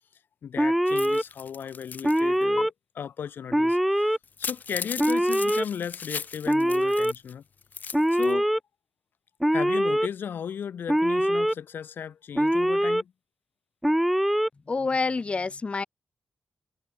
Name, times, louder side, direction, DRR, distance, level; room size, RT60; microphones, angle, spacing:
voice 1, 0.4-7.4 8.1-8.5 9.5-13.1, left 8 dB, 75° left, 3.6 m, -36 dB
Alarm, 0.6-1.2 2.0-2.7 3.5-4.2 5.0-5.6 6.5-7.1 7.9-8.6 9.4-10.1 10.9-11.5 12.4-13.0 13.8-14.5, equal, 5° right, 2.7 m, -23 dB
sound 1, 0.9-2.2 2.6-2.7 4.2-7.3 7.6-8.3, left 6 dB, 55° left, 2.8 m, -37 dB
voice 2, 14.7-15.8, left 4 dB, 35° left, 3.2 m, -27 dB
cardioid pair, 100°, 4 cm